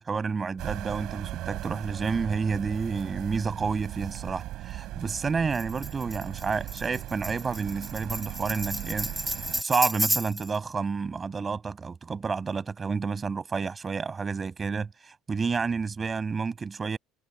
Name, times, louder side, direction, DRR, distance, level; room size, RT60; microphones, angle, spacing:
voice 1, 0.0-9.1 9.6-17.0, right 5 dB, 25° right, 6.4 m, -30 dB
sound 1, 0.6-9.6, right 15 dB, 60° right, 3.1 m, -38 dB
Tambourine, 5.5-10.6, equal, ahead, 1.1 m, -32 dB
cardioid pair, 130°, 0 cm